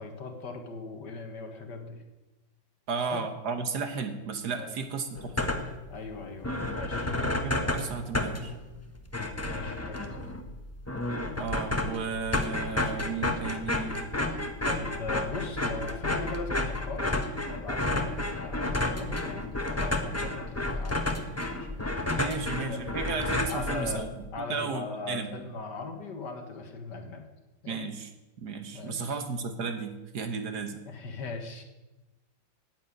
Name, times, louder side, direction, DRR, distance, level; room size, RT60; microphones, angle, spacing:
voice 1, 0.0-2.0 3.1-3.2 4.5-4.8 5.9-7.1 9.4-10.3 14.2-17.1 17.4-21.2 21.5-21.8 22.6-22.8 23.5-27.2 27.6-27.8 28.7-29.2 30.9-31.6, left 3 dB, 60° left, 4 dB, 2.2 m, -39 dB
voice 2, 2.9-5.5 6.6-6.8 7.1-8.5 11.4-14.0 22.1-25.3 27.7-28.1 28.4-30.8, right 5 dB, 60° right, 8 dB, 1.6 m, -34 dB
sound 1, 5.2-5.9 6.2-6.3 6.4-24.3, left 2 dB, 15° left, 0.6 m, -31 dB
10.0 x 9.2 x 8.9 m, 1.1 s
omnidirectional pair, 2.1 m